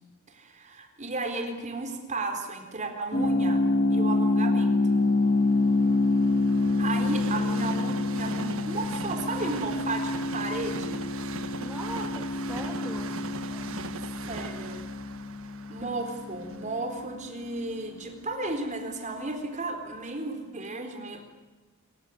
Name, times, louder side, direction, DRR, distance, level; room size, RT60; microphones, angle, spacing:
voice 1, 0.3-3.6 3.9-5.1 6.8-11.0 14.2-14.8 15.7-21.2, right 2 dB, 35° right, 4 dB, 4.0 m, -34 dB
sound 1, 3.1-17.9, left 2 dB, 40° left, 1.9 m, -27 dB
Train, 3.5-19.4 20.0-20.1, right 4 dB, 65° right, 1.4 m, -41 dB
voice 2, 11.3-13.1 13.5-13.7, right 1 dB, 10° right, -1 dB, 2.6 m, -40 dB
27.0 x 16.0 x 9.8 m, 1.2 s
head